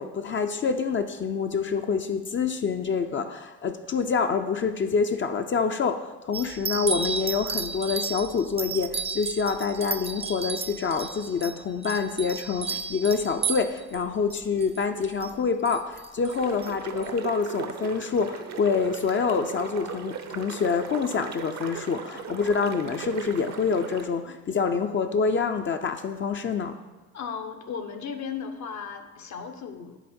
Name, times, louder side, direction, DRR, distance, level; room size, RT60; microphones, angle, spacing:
voice 1, 0.0-26.8, left 5 dB, 40° left, 6 dB, 0.5 m, -27 dB
sound 1, 6.3-14.0 14.3-15.3 15.7-16.4 16.6-16.7 17.0-17.1, right 5 dB, 20° right, 0.4 m, -33 dB
sound 2, 16.3-24.1, right 7 dB, 60° right, 0.8 m, -38 dB
voice 2, 27.1-30.0, left 6 dB, 65° left, 6 dB, 0.9 m, -36 dB
10.0 x 3.7 x 4.3 m, 1.2 s
supercardioid pair, 70°, 31 cm